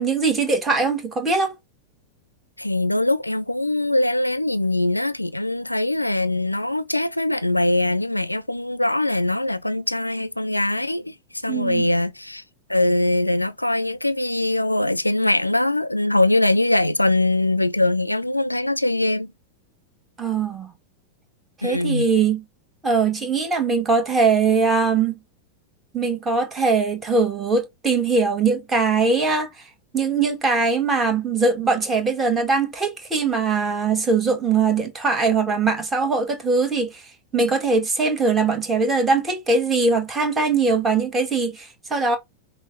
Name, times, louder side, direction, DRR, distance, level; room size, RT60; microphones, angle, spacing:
voice 1, 0.0-1.5 11.5-11.9 20.2-20.7 21.6-22.4 22.8-25.2 25.9-29.6 29.9-37.0 37.3-42.2, right 4 dB, 15° right, 1.2 m, -21 dB
voice 2, 2.6-11.1 11.4-12.4 12.7-19.3 21.6-22.1, left 1 dB, 85° left, 0.4 m, -22 dB
5.4 x 2.2 x 3.7 m
figure-of-eight pair, 90°, 0 cm